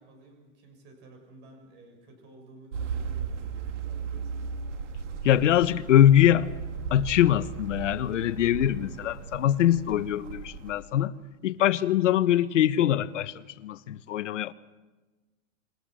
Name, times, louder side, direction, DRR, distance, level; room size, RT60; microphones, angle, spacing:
voice 1, 0.0-4.5, right 2 dB, 25° right, 6.3 m, -52 dB
sound 1, 2.7-10.8, right 6 dB, 65° right, 2.5 m, -36 dB
voice 2, 5.2-6.5 6.9-11.1 11.4-14.5, left 11 dB, 75° left, 1.2 m, -23 dB
28.0 x 22.5 x 6.4 m
supercardioid pair, 170°, 38 cm